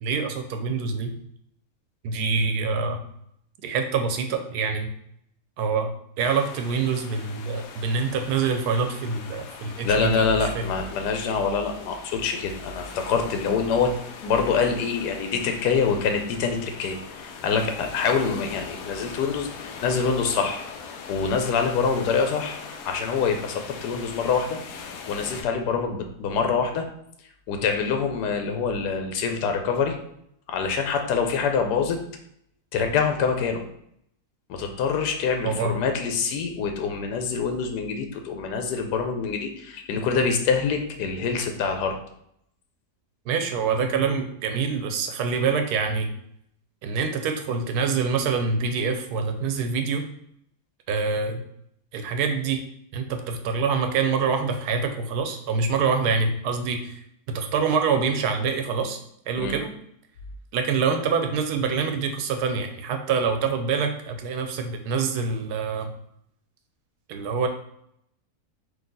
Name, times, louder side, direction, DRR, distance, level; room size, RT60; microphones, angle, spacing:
voice 1, 0.0-1.1 2.0-3.0 3.6-4.9 5.6-5.9 6.2-10.6 35.4-35.8 43.3-46.1 46.8-50.0 50.9-51.4 51.9-52.6 52.9-57.0 57.3-59.0 59.3-59.7 60.5-65.9 67.1-67.5, right 5 dB, 75° right, 6 dB, 1.1 m, -25 dB
sound 1, 6.2-25.4, left 5 dB, 70° left, 0.9 m, -41 dB
voice 2, 9.8-13.9 14.2-22.6 22.8-24.6 25.1-26.9 27.5-30.0 30.5-32.0 32.7-33.6 34.5-42.0 59.4-59.6, left 5 dB, 90° left, 5 dB, 1.2 m, -25 dB
3.9 x 2.8 x 3.8 m, 0.73 s
omnidirectional pair, 1.7 m